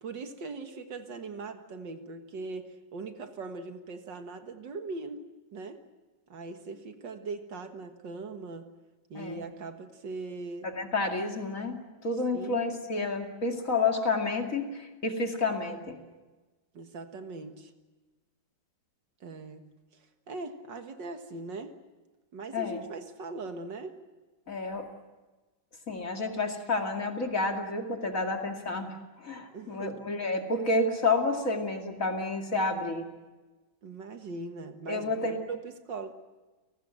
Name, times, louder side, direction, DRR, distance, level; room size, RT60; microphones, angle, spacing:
voice 1, 0.0-5.2 5.5-5.8 6.3-8.7 9.1-10.7 12.3-12.6 16.7-17.7 19.2-19.6 20.3-21.7 22.3-24.0 29.5-30.0 33.8-35.1 35.5-36.1, right 3 dB, 65° right, 7 dB, 2.2 m, -40 dB
voice 2, 9.1-9.5 10.6-16.0 22.5-22.8 24.5-24.9 25.9-28.9 29.2-33.1 34.9-35.4, left 3 dB, 40° left, 3 dB, 2.7 m, -30 dB
30.0 x 18.5 x 7.7 m, 1.2 s
omnidirectional pair, 2.1 m